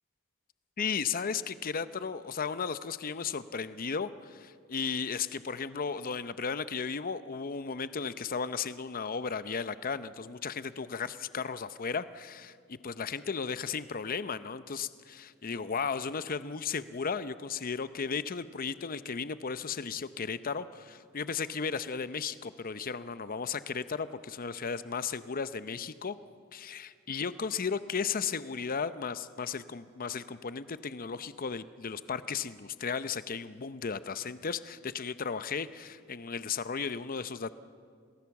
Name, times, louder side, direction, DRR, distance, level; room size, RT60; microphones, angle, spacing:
voice 1, 0.8-26.2 26.5-37.5, left 5 dB, 45° left, 13 dB, 0.7 m, -35 dB
27.5 x 19.0 x 7.1 m, 2.1 s
head